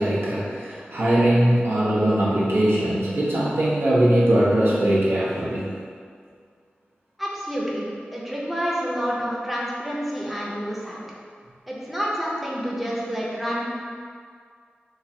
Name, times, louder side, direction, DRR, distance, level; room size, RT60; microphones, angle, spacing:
voice 1, 0.0-5.7, right 1 dB, 75° right, -7 dB, 0.6 m, -21 dB
voice 2, 7.2-11.0 11.7-13.7, equal, ahead, -6 dB, 0.5 m, -28 dB
3.1 x 2.4 x 2.6 m, 2.1 s
wide cardioid pair, 75°, 4 cm